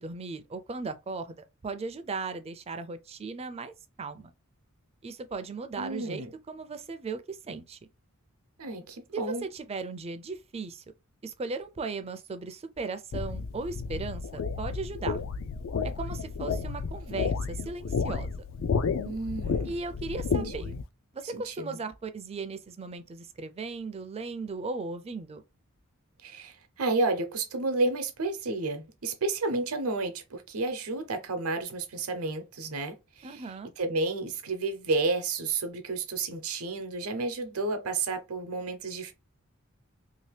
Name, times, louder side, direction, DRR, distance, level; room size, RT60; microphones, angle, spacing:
voice 1, 0.0-4.3 5.0-7.8 9.1-10.8 11.2-15.2 15.8-18.5 19.6-20.7 21.1-25.4 33.2-33.7, right 4 dB, 30° right, 0.4 m, -37 dB
voice 2, 5.8-6.3 8.6-9.4 19.0-19.7 20.3-20.8 21.2-21.8 26.2-33.4 33.8-39.1, right 3 dB, 80° right, 0.8 m, -31 dB
sound 1, 13.1-20.8, left 5 dB, 65° left, 0.4 m, -31 dB
3.0 x 2.8 x 3.3 m
head